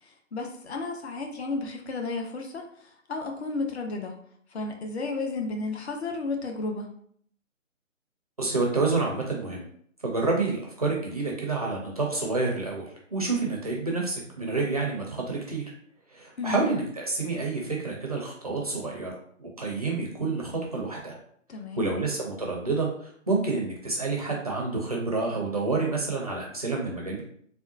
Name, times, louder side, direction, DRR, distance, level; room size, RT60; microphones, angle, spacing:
voice 1, 0.0-4.2 4.5-6.9 16.4-16.6 21.5-21.9, left 3 dB, 55° left, 3 dB, 0.7 m, -33 dB
voice 2, 8.4-9.7 10.0-15.6 16.1-19.1 19.4-21.2 21.8-27.2, right 3 dB, 30° right, -1 dB, 0.5 m, -28 dB
3.5 x 2.2 x 2.6 m, 0.62 s
figure-of-eight pair, 140°, 40 cm